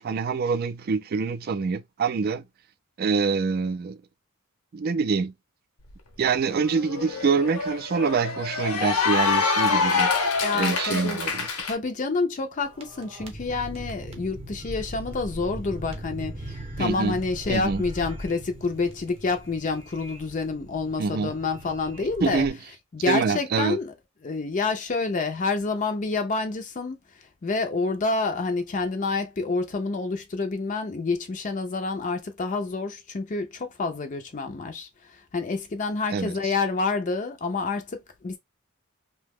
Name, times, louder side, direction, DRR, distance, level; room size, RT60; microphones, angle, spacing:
voice 1, 0.0-2.4 3.0-4.0 4.7-5.3 6.2-11.5 16.8-17.2 17.5-17.8 21.0-21.3 22.2-22.6 23.1-23.8 36.1-36.5, right 5 dB, 45° right, 0.3 m, -25 dB
Cheering / Applause, 5.9-6.0 6.3-11.8, left 5 dB, 80° left, 0.8 m, -26 dB
voice 2, 10.4-11.2 11.7-22.5 22.9-23.9 24.2-27.0 27.4-34.9 35.3-38.4, left 3 dB, 35° left, 0.4 m, -28 dB
sound 1, 12.6-22.5, right 1 dB, 25° right, 0.7 m, -39 dB
2.8 x 2.1 x 3.4 m
head